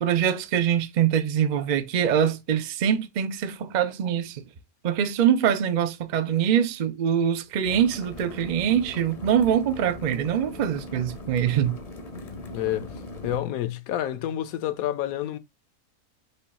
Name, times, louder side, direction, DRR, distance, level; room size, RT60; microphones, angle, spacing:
voice 1, 0.0-4.4 4.8-11.8, right 9 dB, 75° right, 0.4 m, -24 dB
sound 1, 7.6-13.4, left 2 dB, 40° left, 0.6 m, -40 dB
voice 2, 12.5-12.9 13.2-15.4, left 12 dB, 75° left, 1.0 m, -28 dB
5.3 x 2.3 x 4.0 m
omnidirectional pair, 1.6 m